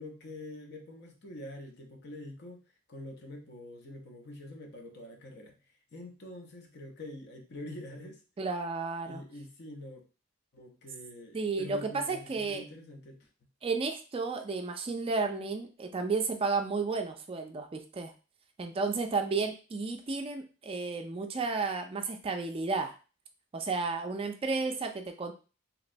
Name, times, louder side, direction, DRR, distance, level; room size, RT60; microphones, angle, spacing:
voice 1, 0.0-2.6 2.9-5.6 5.9-8.2 9.0-10.0 10.5-13.3, left 1 dB, 55° left, 3 dB, 0.7 m, -45 dB
voice 2, 8.4-9.2 11.3-12.6 13.6-18.1 18.6-22.9 23.5-25.3, right 4 dB, 30° right, 5 dB, 0.3 m, -32 dB
3.1 x 2.9 x 2.5 m, 0.34 s
head